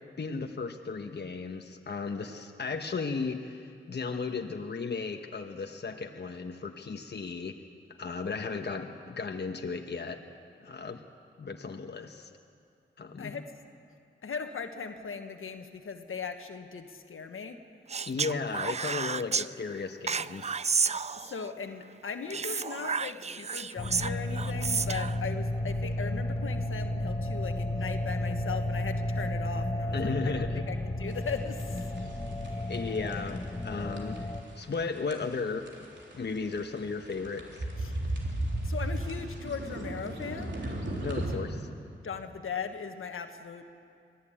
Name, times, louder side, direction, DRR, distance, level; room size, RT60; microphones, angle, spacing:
voice 1, 0.2-7.6 8.0-10.2 10.6-11.0 11.4-12.3 13.0-13.4 18.0-20.6 29.9-30.7 32.7-34.2 34.5-35.7 36.1-37.6 41.0-41.6, left 4 dB, 55° left, 4 dB, 1.3 m, -35 dB
voice 2, 14.2-17.6 21.2-31.9 37.8-38.0 38.6-40.5 41.3-41.4 42.0-43.6, left 6 dB, 75° left, 6 dB, 1.4 m, -38 dB
Speech, 17.9-19.5 20.1-21.5 22.3-25.2, right 5 dB, 30° right, 0.4 m, -31 dB
sound 1, 23.8-34.4, left 1 dB, 20° left, 1.7 m, -33 dB
sound 2, 31.1-41.4, right 1 dB, 60° right, 3.9 m, -35 dB
23.0 x 14.5 x 8.9 m, 2.3 s
cardioid pair, 50°, 21 cm